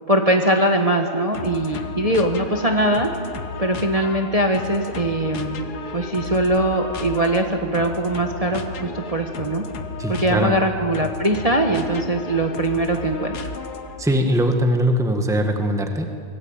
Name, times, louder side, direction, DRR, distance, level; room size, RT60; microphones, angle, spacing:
voice 1, 0.1-3.1 3.6-5.6 5.9-9.6 10.1-13.5, right 1 dB, 25° right, 3 dB, 1.4 m, -21 dB
sound 1, 1.3-14.1, left 4 dB, 75° left, 1.8 m, -34 dB
voice 2, 10.0-10.6 14.0-16.1, equal, ahead, 5 dB, 1.5 m, -21 dB
24.5 x 20.0 x 8.9 m, 2.4 s
omnidirectional pair, 1.7 m